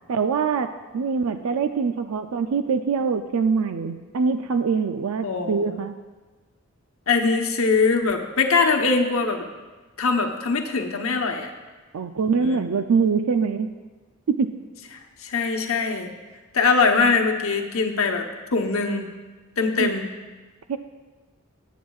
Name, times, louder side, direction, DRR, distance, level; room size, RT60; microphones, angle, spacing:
voice 1, 0.1-5.9 11.9-13.7 14.3-14.6 19.8-19.9 20.7-20.8, right 5 dB, 85° right, 8 dB, 0.4 m, -24 dB
voice 2, 5.2-5.8 7.1-9.4 10.0-11.5 12.3-12.6 15.2-16.1 16.5-19.1 19.6-20.1, left 4 dB, 75° left, 3 dB, 1.0 m, -22 dB
17.5 x 9.1 x 2.4 m, 1.3 s
head